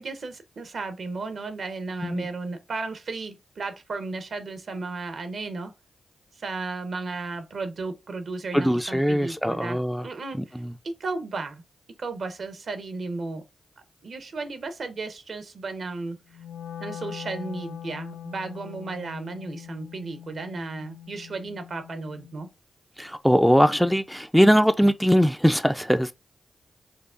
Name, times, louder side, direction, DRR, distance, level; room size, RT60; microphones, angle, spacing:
voice 1, 0.0-5.7 6.3-11.6 12.0-13.4 14.0-16.2 16.8-22.5, right 3 dB, 70° right, 0.8 m, -34 dB
voice 2, 8.5-10.1 10.4-10.7 23.0-26.1, equal, ahead, 0.4 m, -21 dB
Wind instrument woodwind instrument, 16.3-22.5, left 10 dB, 80° left, 0.6 m, -42 dB
4.7 x 2.3 x 2.4 m
supercardioid pair, 45°, 0 cm